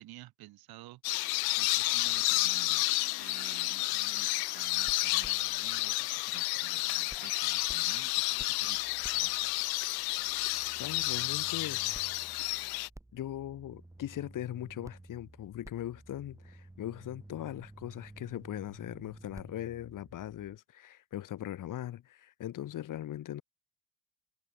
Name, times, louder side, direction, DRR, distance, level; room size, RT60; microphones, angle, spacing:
voice 1, 0.0-9.5, right 16 dB, 70° right, 3.1 m, -52 dB
sound 1, 1.0-12.9, left 24 dB, 75° left, 0.5 m, -31 dB
sound 2, 4.7-6.8 7.1-20.6, right 2 dB, 10° right, 6.8 m, -53 dB
voice 2, 10.7-12.0 13.1-23.4, left 12 dB, 55° left, 2.8 m, -40 dB
cardioid pair, 130°, 38 cm